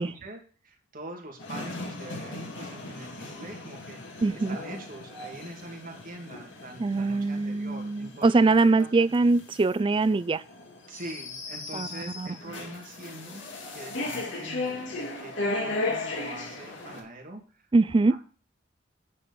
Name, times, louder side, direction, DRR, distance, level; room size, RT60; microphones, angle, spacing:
voice 1, 0.0-9.1 10.9-17.7 18.1-18.2, right 1 dB, 45° right, 2.1 m, -44 dB
sound 1, 1.4-17.0, left 2 dB, 70° left, 2.2 m, -37 dB
voice 2, 4.2-4.6 6.8-10.4 11.7-12.3 17.7-18.2, right 3 dB, 25° right, 0.3 m, -23 dB
9.7 x 4.4 x 6.9 m
head